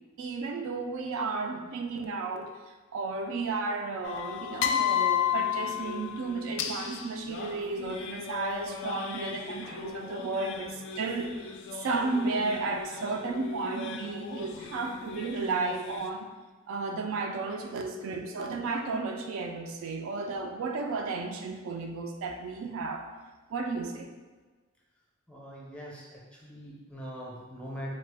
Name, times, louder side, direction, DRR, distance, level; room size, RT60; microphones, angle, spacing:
voice 1, 0.2-11.3 11.7-16.3 16.7-23.1 23.5-24.1, right 3 dB, 70° right, 4 dB, 0.3 m, -33 dB
sound 1, 4.0-16.1, left 9 dB, 60° left, 0.3 m, -34 dB
voice 2, 25.3-27.9, equal, 5° left, -4 dB, 0.6 m, -42 dB
3.9 x 2.1 x 3.4 m, 1.3 s
head